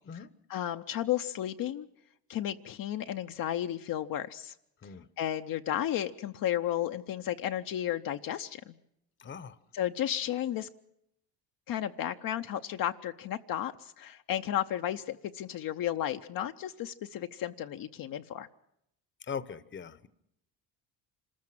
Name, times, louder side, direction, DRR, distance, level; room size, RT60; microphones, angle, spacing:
voice 1, 0.5-1.9 2.3-4.5 5.2-8.7 9.7-10.7 11.7-18.5, left 11 dB, 55° left, 6 dB, 0.7 m, -33 dB
voice 2, 9.2-9.6 19.2-20.1, left 6 dB, 30° left, 16 dB, 0.9 m, -40 dB
25.5 x 14.0 x 7.5 m, 0.78 s
supercardioid pair, 75°, 39 cm